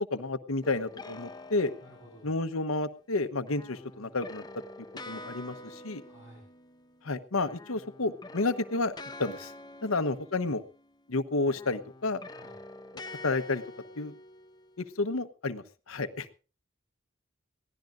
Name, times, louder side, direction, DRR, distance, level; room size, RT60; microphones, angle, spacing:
voice 1, 0.0-1.7 2.2-4.4 5.1-6.0 7.0-8.9 9.2-9.5 9.8-10.6 11.1-12.2 12.9-13.6 14.0-14.1 15.0-16.3, left 3 dB, 80° left, 11 dB, 1.1 m, -31 dB
sound 1, 0.6-2.5 3.5-7.2 7.4-11.0 11.4-14.9, left 2 dB, 20° left, 0.8 m, -47 dB
voice 2, 1.8-2.3 6.0-6.5 9.8-9.9 12.3-12.6, right 1 dB, 10° right, -4 dB, 8.0 m, -54 dB
22.5 x 17.0 x 2.5 m, 0.37 s
head